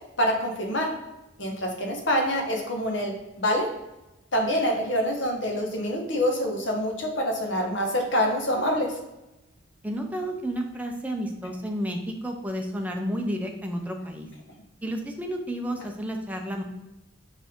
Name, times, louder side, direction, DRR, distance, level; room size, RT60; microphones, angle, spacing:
voice 1, 0.2-0.9 1.4-3.7 4.3-8.9, equal, 65° left, 1 dB, 1.4 m, -26 dB
voice 2, 9.8-14.3 14.8-16.6, equal, 10° right, 2 dB, 0.7 m, -31 dB
5.6 x 4.9 x 3.7 m, 0.97 s
head